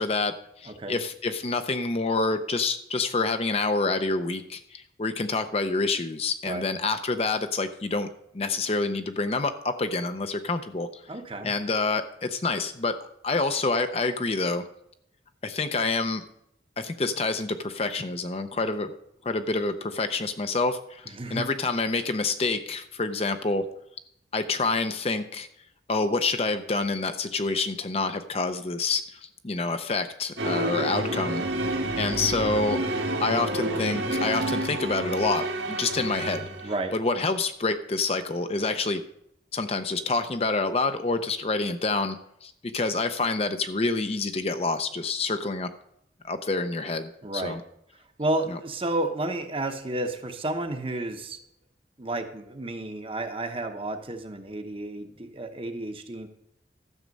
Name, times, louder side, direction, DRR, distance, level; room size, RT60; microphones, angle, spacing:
voice 1, 0.0-8.1 8.3-11.0 11.4-14.6 15.4-16.2 16.8-18.9 19.2-23.7 24.3-25.5 25.9-31.4 32.0-32.8 33.2-36.5 36.9-39.0 39.5-45.7 46.2-47.6 48.5-48.6, left 3 dB, 35° left, 8 dB, 0.6 m, -27 dB
voice 2, 0.7-1.0 6.4-6.6 11.1-11.5 21.1-21.5 36.6-36.9 47.2-47.6 48.2-51.4 52.0-56.3, right 2 dB, 30° right, 6 dB, 0.9 m, -31 dB
sound 1, 30.4-36.9, right 1 dB, 75° right, 1.9 m, -29 dB
12.5 x 7.3 x 5.3 m, 0.75 s
head